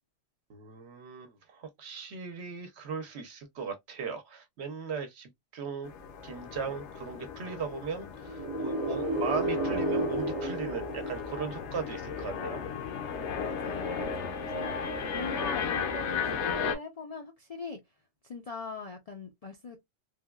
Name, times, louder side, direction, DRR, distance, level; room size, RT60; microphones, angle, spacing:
voice 1, 0.5-5.9 6.2-12.6, right 5 dB, 65° right, 0.9 m, -38 dB
sound 1, 5.8-16.8, left 6 dB, 70° left, 0.9 m, -35 dB
sound 2, 8.2-12.0, right 2 dB, 35° right, 0.5 m, -32 dB
voice 2, 13.4-14.8 15.1-17.8 18.2-19.8, left 3 dB, 55° left, 0.4 m, -41 dB
3.3 x 2.2 x 2.2 m
omnidirectional pair, 1.3 m